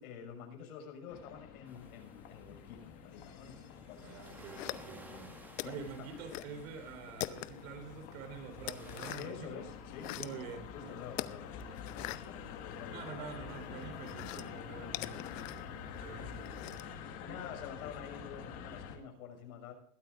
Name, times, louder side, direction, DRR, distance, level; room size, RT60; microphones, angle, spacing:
voice 1, 0.0-4.5 5.6-6.1 9.2-13.6 17.2-19.7, left 7 dB, 90° left, 3 dB, 6.1 m, -49 dB
sound 1, 1.1-19.0, left 7 dB, 35° left, 1.7 m, -47 dB
sound 2, 1.7-9.2, right 1 dB, 5° right, 1.7 m, -58 dB
voice 2, 4.0-5.3 5.6-9.6 10.1-10.9 11.6-11.8 12.9-17.1, right 6 dB, 70° right, 6 dB, 4.2 m, -47 dB
sound 3, 4.6-5.2 5.6-6.6 6.8-7.8 8.2-9.4 9.8-10.4 11.1-13.1 13.5-16.9, left 16 dB, 60° left, 0.8 m, -43 dB
21.0 x 13.5 x 2.5 m, 0.64 s
supercardioid pair, 180°, 42 cm